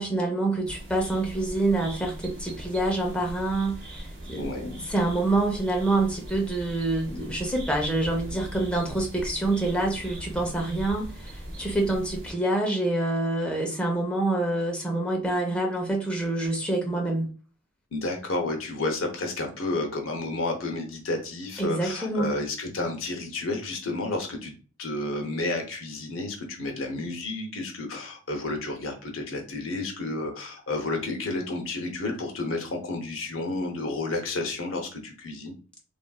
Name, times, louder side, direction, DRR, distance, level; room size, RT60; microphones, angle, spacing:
voice 1, 0.0-17.3 21.6-22.4, right 2 dB, 5° left, 0.7 m, -27 dB
sound 1, 0.6-12.3, right 1 dB, 70° right, 1.2 m, -40 dB
voice 2, 4.3-4.7 17.9-24.5 24.8-35.5, left 2 dB, 85° left, 0.7 m, -31 dB
3.1 x 2.5 x 2.3 m
head